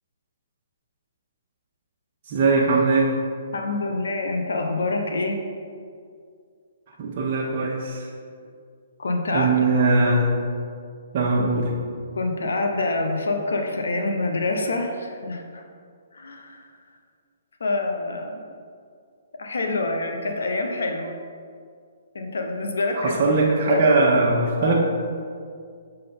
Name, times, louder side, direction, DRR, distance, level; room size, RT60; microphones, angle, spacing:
voice 1, 2.3-3.2 7.0-8.1 9.3-10.4 11.1-11.8 23.0-24.8, right 3 dB, 40° right, -4 dB, 0.8 m, -20 dB
voice 2, 3.5-5.4 9.0-9.6 12.2-15.6 16.1-16.7 17.6-18.4 19.4-21.1 22.1-23.2 23.7-23.8 24.6-24.8, left 2 dB, 85° left, 4 dB, 0.6 m, -26 dB
6.4 x 3.8 x 4.3 m, 2.2 s
hypercardioid pair, 155°, 0 cm